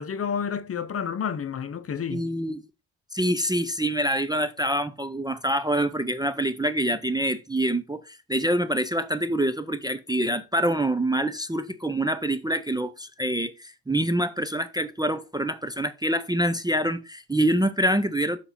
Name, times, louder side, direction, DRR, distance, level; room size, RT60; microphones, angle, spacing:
voice 1, 0.0-2.3, left 7 dB, 30° left, 0.7 m, -30 dB
voice 2, 2.1-2.6 3.1-18.4, right 1 dB, 10° right, 0.4 m, -26 dB
7.1 x 5.0 x 5.5 m
wide cardioid pair, 180°, 46 cm